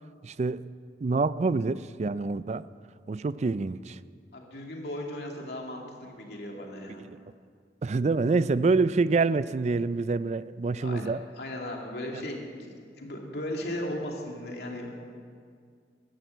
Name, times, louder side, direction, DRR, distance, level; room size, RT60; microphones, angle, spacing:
voice 1, 0.2-0.6 1.0-2.7 3.1-4.0 7.8-11.2, right 3 dB, 40° right, 0.4 m, -26 dB
voice 2, 4.3-7.0 10.8-11.1 11.4-15.1, left 1 dB, 65° left, 2.6 m, -37 dB
14.0 x 11.5 x 8.0 m
head